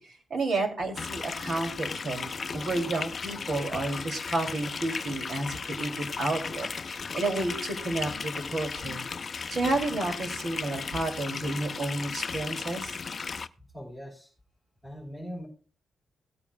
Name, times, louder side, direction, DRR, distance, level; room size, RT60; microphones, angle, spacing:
voice 1, 0.0-9.0 9.5-12.9, right 2 dB, 60° right, 4 dB, 2.7 m, -31 dB
sound 1, 1.0-13.5, left 5 dB, 40° left, 0.5 m, -36 dB
voice 2, 13.7-14.3 14.8-15.5, equal, 5° right, -4 dB, 3.8 m, -40 dB
18.0 x 8.8 x 2.3 m, 0.36 s
cardioid pair, 105°, 0 cm